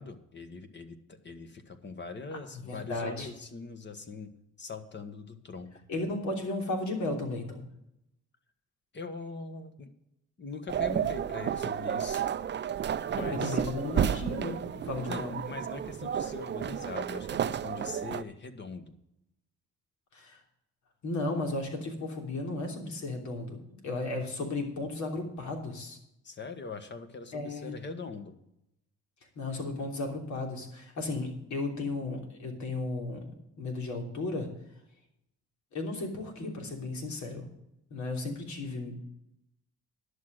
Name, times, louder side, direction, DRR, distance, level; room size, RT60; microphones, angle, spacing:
voice 1, 0.0-4.3 4.6-5.8 8.9-9.9 10.4-12.2 13.1-13.6 14.9-18.9 26.2-28.4, left 4 dB, 35° left, 9 dB, 1.4 m, -42 dB
voice 2, 2.5-3.3 5.9-7.6 13.2-15.3 20.1-20.4 21.0-23.6 23.8-26.0 27.3-27.8 29.4-33.2 33.6-34.5 35.7-37.5 37.9-39.0, left 2 dB, 70° left, 2 dB, 3.2 m, -34 dB
sound 1, 10.7-18.2, right 9 dB, 35° right, 0.5 m, -32 dB
11.0 x 6.5 x 7.6 m, 0.81 s
cardioid pair, 90°, 30 cm